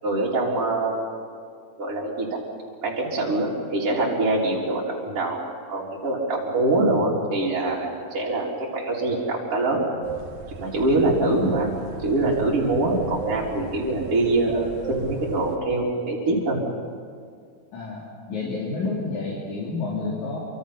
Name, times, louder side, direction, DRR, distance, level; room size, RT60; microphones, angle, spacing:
voice 1, 0.0-1.0 1.8-2.4 2.8-5.4 5.7-9.8 10.5-16.6, right 2 dB, 50° right, -6 dB, 4.3 m, -24 dB
sound 1, 10.0-15.6, right 4 dB, 70° right, 3.0 m, -35 dB
voice 2, 17.7-20.4, left 3 dB, 75° left, -5 dB, 4.3 m, -29 dB
28.0 x 25.0 x 5.9 m, 2.1 s
omnidirectional pair, 3.4 m